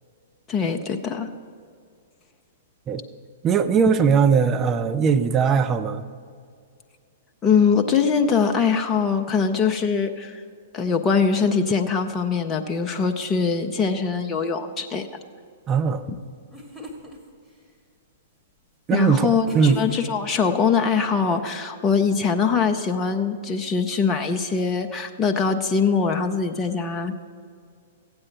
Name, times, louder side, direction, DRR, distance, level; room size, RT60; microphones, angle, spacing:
voice 1, 0.5-1.3 7.4-10.4 10.7-15.1 16.1-16.2 18.9-27.2, left 5 dB, 20° left, 4 dB, 0.7 m, -22 dB
voice 2, 3.4-6.0 15.7-16.0 18.9-19.3 19.5-19.8, right 6 dB, 25° right, 9 dB, 0.6 m, -19 dB
sound 1, 16.1-16.2 16.5-17.2 19.5-20.3, left 2 dB, ahead, 1.8 m, -36 dB
15.5 x 8.7 x 4.5 m, 2.2 s
figure-of-eight pair, 110°, 0 cm